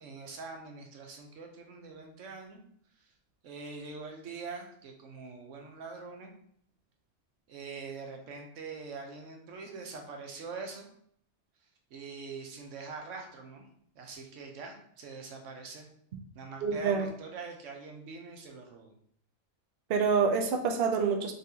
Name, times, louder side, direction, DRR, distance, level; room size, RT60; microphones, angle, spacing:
voice 1, 0.0-2.6 3.4-6.3 7.5-10.9 11.9-13.6 14.0-15.9 16.3-18.9, right 4 dB, 80° right, 3 dB, 1.1 m, -43 dB
voice 2, 16.6-17.1 19.9-21.3, right 5 dB, 60° right, 3 dB, 0.7 m, -27 dB
4.0 x 3.5 x 2.7 m, 0.64 s
omnidirectional pair, 1.3 m